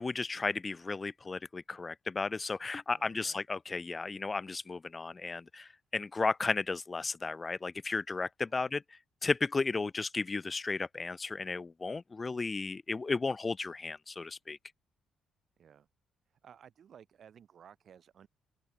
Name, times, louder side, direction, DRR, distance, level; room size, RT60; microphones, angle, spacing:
voice 1, 0.0-8.8 9.2-14.6, left 4 dB, 25° left, 0.6 m, -34 dB
voice 2, 2.9-3.4 8.5-8.7 15.6-15.9 16.4-18.3, right 8 dB, 55° right, 6.5 m, -57 dB
open air
cardioid pair, 90°, 0 cm